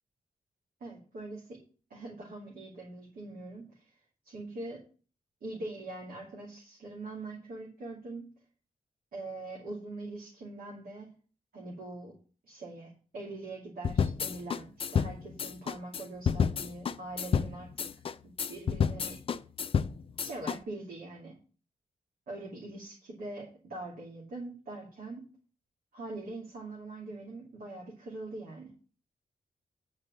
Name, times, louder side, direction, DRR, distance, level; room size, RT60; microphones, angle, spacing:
voice 1, 0.8-1.6 1.9-4.8 5.4-8.3 9.1-11.1 11.5-12.1 12.4-17.9 18.2-19.2 20.2-21.4 22.3-25.3 25.9-28.7, right 2 dB, 85° right, -3 dB, 2.5 m, -43 dB
sound 1, 13.8-20.6, left 6 dB, 40° left, 0.3 m, -30 dB
9.7 x 4.2 x 7.5 m, 0.39 s
wide cardioid pair, 170°, 15 cm